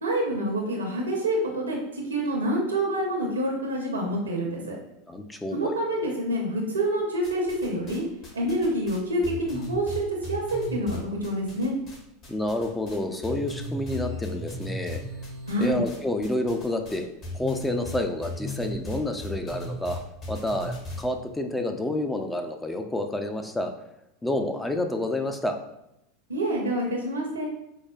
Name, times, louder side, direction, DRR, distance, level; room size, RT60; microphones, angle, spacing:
voice 1, 0.0-4.8 5.5-8.0 8.3-11.7 15.5-15.8 26.3-27.5, right 1 dB, 85° right, 0 dB, 0.7 m, -27 dB
voice 2, 5.1-5.8 12.3-15.0 15.6-17.1 17.3-20.0 20.3-23.7 24.2-25.6, left 1 dB, 10° left, 5 dB, 0.3 m, -29 dB
sound 1, 7.2-12.0 12.2-13.0 13.2-21.0, left 1 dB, 45° left, 1.3 m, -36 dB
4.7 x 2.1 x 2.3 m, 0.84 s
hypercardioid pair, 85°, 0 cm